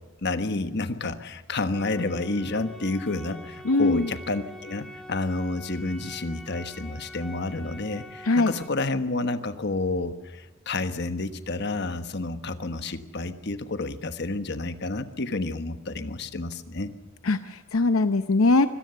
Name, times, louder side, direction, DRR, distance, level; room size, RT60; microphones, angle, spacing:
voice 1, 0.2-16.9, left 2 dB, 55° left, 9 dB, 1.3 m, -30 dB
sound 1, 1.7-8.7, left 1 dB, ahead, 2.1 m, -44 dB
voice 2, 3.6-4.1 8.2-8.5 17.2-18.7, left 3 dB, 75° left, 11 dB, 0.7 m, -21 dB
24.5 x 17.5 x 6.9 m, 1.2 s
head